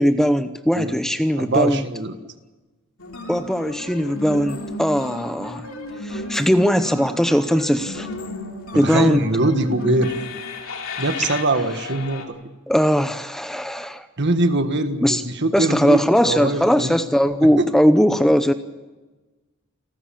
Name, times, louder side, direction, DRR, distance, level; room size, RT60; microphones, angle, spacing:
voice 1, 0.0-1.9 3.3-5.6 6.0-8.1 8.7-9.2 12.7-14.1 15.0-15.2 15.5-18.5, equal, ahead, 10 dB, 0.7 m, -19 dB
voice 2, 1.4-2.1 8.7-10.2 11.0-12.4 14.2-17.0 17.6-17.7, right 2 dB, 55° right, 8 dB, 1.7 m, -22 dB
sound 1, 3.0-12.2, left 2 dB, 75° left, 3.2 m, -33 dB
28.5 x 13.0 x 8.8 m, 1.2 s
head